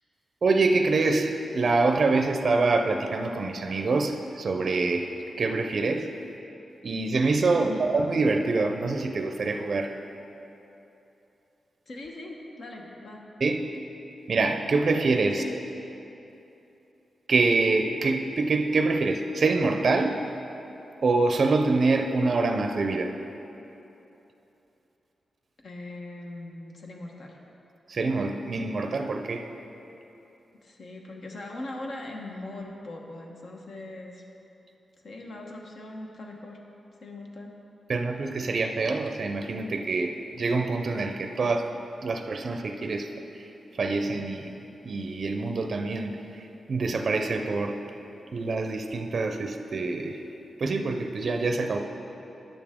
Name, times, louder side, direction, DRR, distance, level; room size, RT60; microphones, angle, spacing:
voice 1, 0.4-6.1 6.8-9.9 13.4-13.7 14.3-15.4 17.3-20.3 21.0-23.2 27.9-29.5 37.9-41.7 42.0-44.5 44.8-47.8 48.3-50.2 50.6-51.8, right 3 dB, 55° right, 5 dB, 0.5 m, -25 dB
voice 2, 11.9-13.2 15.4-15.5 25.6-27.4 30.6-34.2 35.0-36.6 37.0-37.5, left 2 dB, 65° left, 0 dB, 1.1 m, -40 dB
10.0 x 6.9 x 3.6 m, 3.0 s
cardioid pair, 90°, 0 cm